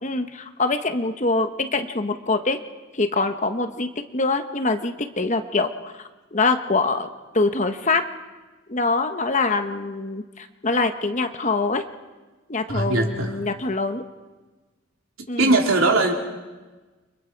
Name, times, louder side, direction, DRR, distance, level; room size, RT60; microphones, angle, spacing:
voice 1, 0.0-2.6 2.9-6.0 6.3-7.1 7.3-8.0 8.7-11.8 12.5-14.0 15.3-15.5, left 3 dB, 35° left, 7 dB, 1.1 m, -24 dB
voice 2, 12.7-13.4 15.4-16.1, right 2 dB, 80° right, 1 dB, 3.2 m, -20 dB
30.0 x 24.5 x 4.7 m, 1.2 s
head